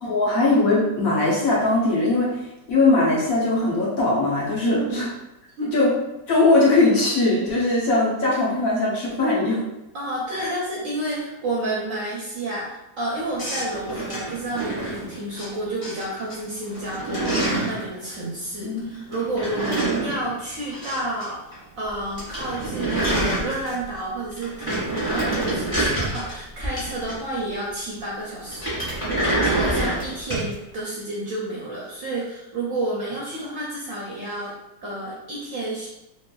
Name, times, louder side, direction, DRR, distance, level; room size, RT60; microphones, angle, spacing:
voice 1, 0.0-5.1 5.7-5.9 6.3-9.6 10.3-10.5 18.6-18.9, left 2 dB, 60° left, -6 dB, 1.1 m, -20 dB
voice 2, 4.7-5.0 5.6-5.8 9.9-34.6 34.8-35.9, right 1 dB, 65° right, -5 dB, 0.8 m, -30 dB
sound 1, 13.4-15.5 15.8-16.4 16.6-17.8 19.1-21.3 21.5-21.6 21.9-22.0 22.2-23.9 24.3-27.4 28.5-30.5, right 2 dB, 15° left, 1.0 m, -26 dB
3.1 x 3.0 x 2.2 m, 0.93 s
omnidirectional pair, 1.8 m